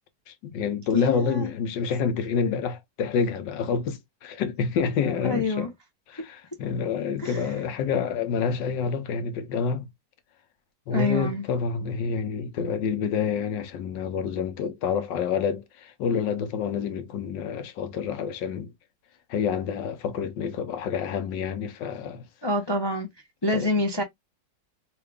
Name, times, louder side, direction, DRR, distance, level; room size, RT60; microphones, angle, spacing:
voice 1, 0.3-5.7 6.1-9.9 10.9-18.7 19.3-22.2 23.5-23.7, left 6 dB, 80° left, 1.4 m, -28 dB
voice 2, 0.9-1.5 5.1-5.7 7.2-7.5 10.9-11.4 22.4-23.1 23.4-24.0, left 2 dB, 35° left, 0.4 m, -26 dB
3.8 x 2.4 x 3.3 m
omnidirectional pair, 1.9 m